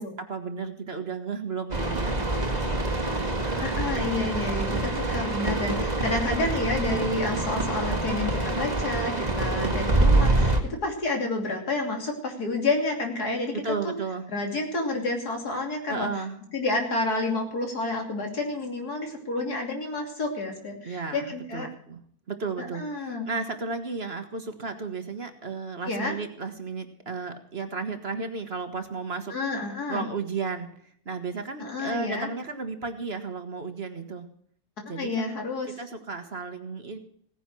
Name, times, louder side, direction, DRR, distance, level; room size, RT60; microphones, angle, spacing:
voice 1, 0.0-3.7 9.5-9.7 13.5-14.3 15.9-16.4 20.8-22.0 22.3-29.3 29.9-30.7 31.0-34.2 34.9-35.3 35.7-37.0, right 4 dB, 40° right, 7 dB, 1.6 m, -34 dB
sound 1, 1.7-10.6, right 2 dB, 25° right, 2.0 m, -26 dB
voice 2, 3.6-13.9 14.3-16.1 16.5-21.7 22.6-23.3 25.9-26.1 29.3-30.1 31.6-32.3 34.9-35.8, left 2 dB, 75° left, 3 dB, 3.4 m, -30 dB
17.0 x 10.0 x 6.2 m, 0.62 s
omnidirectional pair, 1.7 m